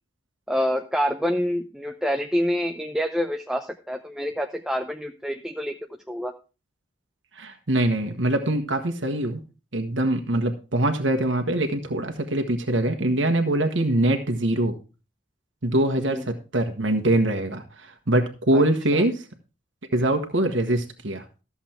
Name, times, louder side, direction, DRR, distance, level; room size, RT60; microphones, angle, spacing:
voice 1, 0.5-5.7 6.1-6.3 16.0-16.3 18.5-18.6 18.9-19.0, equal, 5° right, 4 dB, 0.5 m, -27 dB
voice 2, 7.4-9.4 9.7-14.8 15.6-19.3 19.9-21.2, right 1 dB, 80° right, 5 dB, 1.4 m, -23 dB
13.5 x 7.2 x 4.5 m, 0.32 s
head